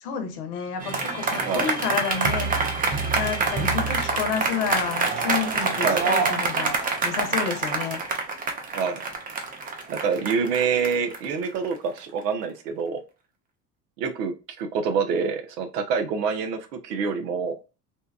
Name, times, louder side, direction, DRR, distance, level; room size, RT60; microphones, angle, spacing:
voice 1, 0.0-2.5 3.1-6.8 7.0-8.0, left 6 dB, 65° left, 0.8 m, -29 dB
sound 1, 0.8-12.2, right 4 dB, 20° right, 0.4 m, -26 dB
voice 2, 9.9-13.0 14.0-17.6, right 5 dB, 75° right, 0.7 m, -26 dB
2.8 x 2.2 x 2.2 m
hypercardioid pair, 75°, 48 cm